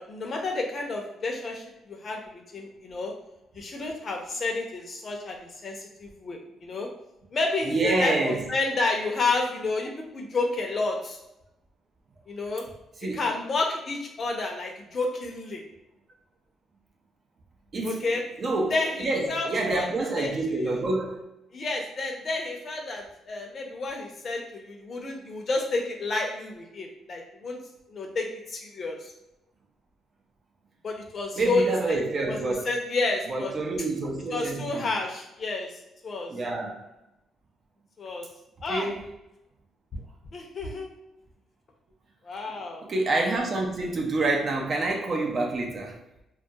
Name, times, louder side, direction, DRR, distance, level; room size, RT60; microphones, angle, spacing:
voice 1, 0.0-2.2 2.5-3.1 3.5-6.9 7.3-11.2 12.3-12.6 13.1-15.6 17.8-18.2 18.7-19.9 20.2-20.8 21.5-27.6 27.9-29.1 30.8-32.0 32.3-33.5 34.3-36.3 38.0-38.3 38.6-38.9 39.9-40.0 40.3-40.9 42.2-42.8, left 3 dB, 45° left, 0.6 m, -30 dB
voice 2, 7.7-8.5 13.0-13.3 17.7-18.0 18.4-21.2 31.4-32.6 33.3-35.0 36.3-36.9 38.7-39.1 42.8-46.0, right 2 dB, 45° right, 0.5 m, -27 dB
2.3 x 2.2 x 2.7 m
cardioid pair, 90°, 0 cm